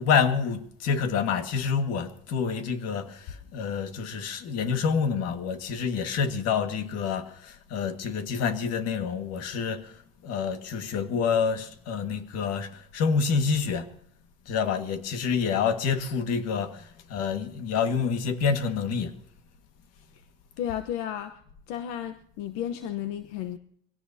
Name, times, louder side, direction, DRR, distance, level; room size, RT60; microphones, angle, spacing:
voice 1, 0.0-10.0 10.2-13.9 14.5-19.2, left 6 dB, 55° left, 1.9 m, -27 dB
voice 2, 20.6-21.4 21.7-23.6, left 10 dB, 75° left, 1.1 m, -33 dB
23.5 x 17.5 x 2.8 m
cardioid pair, 135°, 29 cm